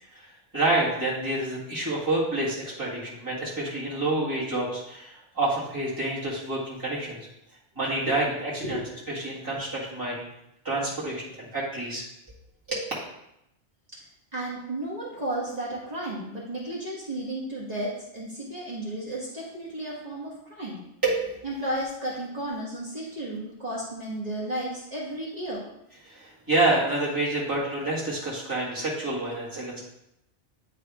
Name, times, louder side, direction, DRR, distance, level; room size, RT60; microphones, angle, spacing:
voice 1, 0.5-7.3 7.8-8.8 9.1-10.3 10.6-12.0 12.7-12.9 21.0-21.3 26.0-29.8, right 2 dB, 15° right, -9 dB, 2.0 m, -28 dB
voice 2, 14.3-20.8 21.4-25.6, right 1 dB, 35° right, -6 dB, 1.4 m, -33 dB
9.8 x 3.5 x 3.5 m, 0.82 s
omnidirectional pair, 1.2 m